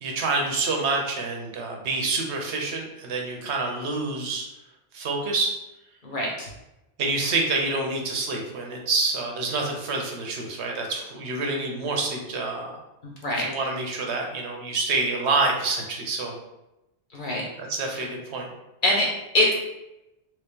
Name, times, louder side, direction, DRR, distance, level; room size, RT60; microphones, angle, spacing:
voice 1, 0.0-4.5 4.9-5.5 7.0-12.7 13.4-16.4 17.6-18.5, right 3 dB, 80° right, 1 dB, 1.0 m, -27 dB
voice 2, 6.0-6.5 13.0-13.5 17.1-17.5 17.9-18.0 18.8-19.5, left 1 dB, 50° left, -3 dB, 1.0 m, -24 dB
3.0 x 2.9 x 3.5 m, 0.93 s
omnidirectional pair, 1.1 m